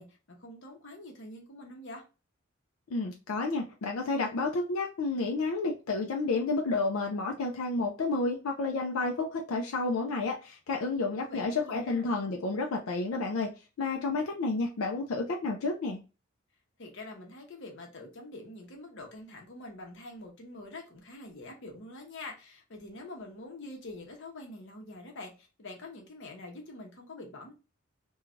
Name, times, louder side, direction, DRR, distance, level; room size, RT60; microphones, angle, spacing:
voice 1, 0.0-2.0 11.2-12.1 16.8-27.5, left 2 dB, 60° left, 0.8 m, -45 dB
voice 2, 2.9-13.5 13.8-16.0, left 3 dB, 90° left, 0.4 m, -30 dB
3.1 x 2.3 x 2.4 m
head